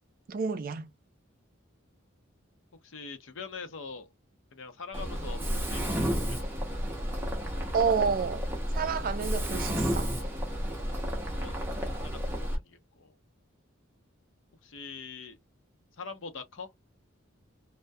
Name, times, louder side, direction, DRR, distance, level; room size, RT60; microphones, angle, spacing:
voice 1, 0.3-0.9 7.7-8.4 8.7-10.1, right 5 dB, 45° right, 0.4 m, -29 dB
voice 2, 2.8-4.1 4.5-6.4 11.3-13.2 14.6-15.4 16.0-16.7, left 4 dB, 65° left, 0.6 m, -44 dB
Mechanisms, 4.9-12.6, equal, 10° right, 0.6 m, -31 dB
2.3 x 2.1 x 2.5 m
head